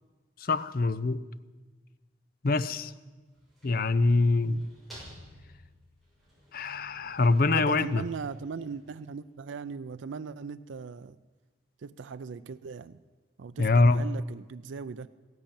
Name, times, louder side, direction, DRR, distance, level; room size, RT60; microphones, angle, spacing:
voice 1, 0.4-1.2 2.4-2.9 3.6-4.6 6.5-8.0 13.6-14.1, left 3 dB, 50° left, 0.5 m, -24 dB
sound 1, 3.3-9.3, equal, ahead, 6.5 m, -54 dB
voice 2, 7.4-11.2 11.8-13.0 13.4-15.1, right 5 dB, 80° right, 0.4 m, -39 dB
15.0 x 11.0 x 8.7 m
head